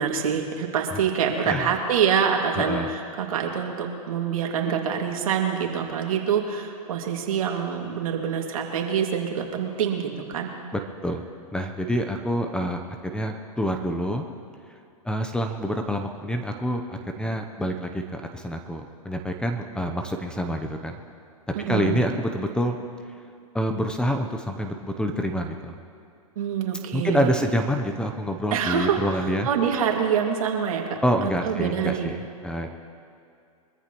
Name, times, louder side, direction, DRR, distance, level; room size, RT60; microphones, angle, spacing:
voice 1, 0.0-10.5 21.6-22.0 26.4-27.4 28.5-32.1, right 7 dB, 70° right, 1 dB, 2.4 m, -26 dB
voice 2, 1.4-1.7 2.6-2.9 11.0-11.2 11.5-14.3 15.0-21.0 21.7-22.8 23.5-25.8 26.9-29.5 31.0-32.8, equal, 5° left, 5 dB, 0.8 m, -27 dB
24.0 x 14.0 x 3.1 m, 2.5 s
hypercardioid pair, 125°, 19 cm